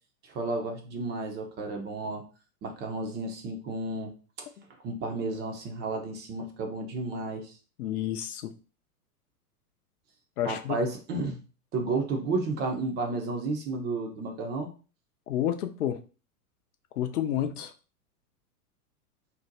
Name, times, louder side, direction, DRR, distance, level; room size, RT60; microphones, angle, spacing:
voice 1, 0.2-2.3 2.6-4.1 4.8-7.6 10.5-11.4 11.7-14.7, right 3 dB, 25° right, 0.5 m, -32 dB
voice 2, 7.8-8.5 10.4-10.8 15.3-16.0 17.0-17.7, left 11 dB, 70° left, 0.7 m, -30 dB
2.6 x 2.1 x 3.9 m
hypercardioid pair, 110°, 46 cm